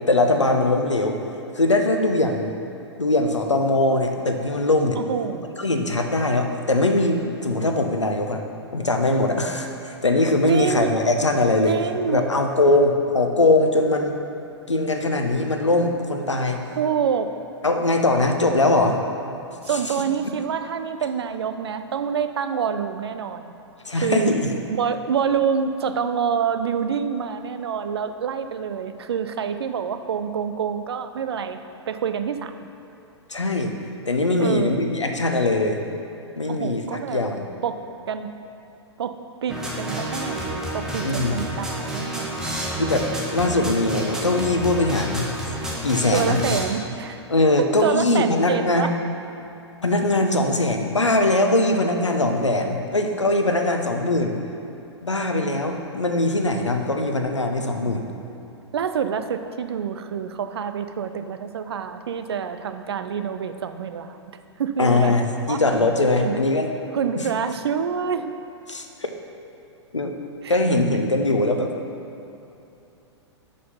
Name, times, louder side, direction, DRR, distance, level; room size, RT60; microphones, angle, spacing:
voice 1, 0.1-1.2 1.5-2.5 3.0-5.0 5.6-8.4 8.7-11.8 12.1-14.1 14.7-16.6 17.6-19.0 23.8-24.5 33.3-33.7 34.1-35.8 36.4-37.5 41.0-41.4 42.8-45.3 45.8-46.6 47.3-48.9 49.8-54.4 55.0-58.1 64.8-66.7 67.1-67.3 68.7-69.1 69.9-70.2 70.5-71.7, left 2 dB, 85° left, 4 dB, 0.7 m, -21 dB
voice 2, 5.0-5.7 10.5-11.0 11.6-12.2 16.8-17.3 19.6-23.5 23.9-31.6 31.9-32.5 34.4-34.9 36.5-37.2 37.6-38.3 39.0-42.4 46.1-47.2 47.6-48.9 58.7-64.2 64.6-65.1 65.5-65.6 66.2-66.4 66.9-68.3 70.4-70.6, right 7 dB, 60° right, 9 dB, 0.4 m, -27 dB
sound 1, 39.5-46.6, right 1 dB, 5° right, 0.8 m, -29 dB
5.4 x 5.1 x 5.5 m, 2.8 s
figure-of-eight pair, 105°, 15 cm